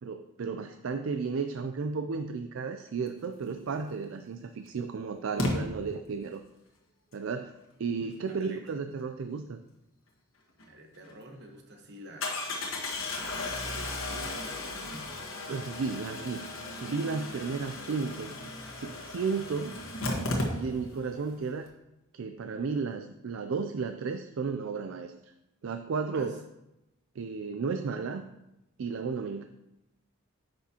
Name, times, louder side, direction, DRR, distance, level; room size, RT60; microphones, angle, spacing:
voice 1, 0.0-6.4 7.1-7.5 7.8-9.6 15.5-16.5 16.8-18.3 18.8-19.8 20.1-21.7 22.1-25.3 25.6-26.4 27.2-28.2 28.8-29.4, right 5 dB, 65° right, 7 dB, 0.4 m, -33 dB
Engine starting, 3.9-4.0 5.4-5.5 10.6-10.7 11.0-11.1 12.2-21.0 21.3-21.4 21.6-21.7, left 2 dB, 70° left, 1.5 m, -35 dB
voice 2, 8.3-8.6 10.7-12.4 13.5-15.1 17.2-17.4 26.1-26.4, right 1 dB, 50° right, 3 dB, 1.2 m, -48 dB
9.7 x 6.2 x 2.9 m, 0.91 s
head